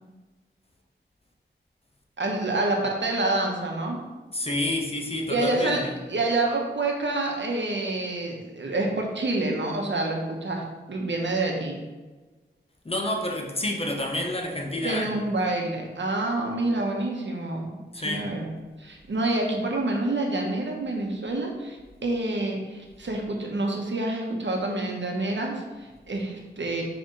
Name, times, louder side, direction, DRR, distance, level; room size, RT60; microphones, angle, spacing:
voice 1, 2.2-4.0 5.3-5.8 6.1-11.8 14.8-18.5 18.8-26.8, right 2 dB, 70° right, 0 dB, 1.1 m, -27 dB
voice 2, 4.3-5.9 12.8-15.1 17.9-18.3, left 1 dB, 30° left, 2 dB, 0.9 m, -29 dB
5.1 x 3.4 x 5.4 m, 1.2 s
cardioid pair, 55°, 20 cm